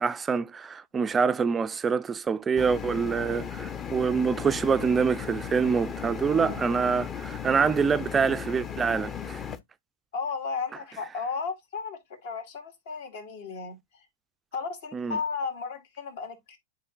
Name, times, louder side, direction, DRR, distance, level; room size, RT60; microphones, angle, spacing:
voice 1, 0.0-9.4 14.9-15.2, right 6 dB, 15° right, 0.3 m, -26 dB
sound 1, 2.6-9.6, left 8 dB, 25° left, 0.6 m, -36 dB
voice 2, 6.3-6.6 10.1-14.1 14.5-16.6, left 5 dB, 70° left, 2.4 m, -34 dB
10.5 x 3.8 x 2.4 m
hypercardioid pair, 130°, 0 cm